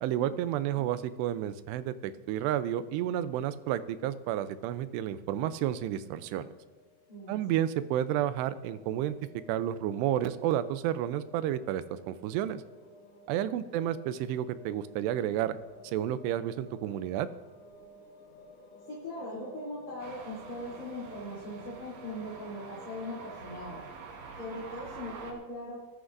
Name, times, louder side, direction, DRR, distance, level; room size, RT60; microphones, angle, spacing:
voice 1, 0.0-6.5 7.3-9.1 9.5-12.6 13.3-15.6 15.8-17.3, right 11 dB, 85° right, 13 dB, 2.7 m, -31 dB
sound 1, 6.1-23.8, left 1 dB, 80° left, 3.4 m, -54 dB
voice 2, 7.1-7.4 13.7-13.8 18.9-23.8 24.4-25.9, left 1 dB, 25° left, -8 dB, 3.0 m, -40 dB
sound 2, 20.0-25.3, right 4 dB, 65° right, 1.7 m, -47 dB
21.0 x 11.0 x 2.6 m, 1.3 s
omnidirectional pair, 4.8 m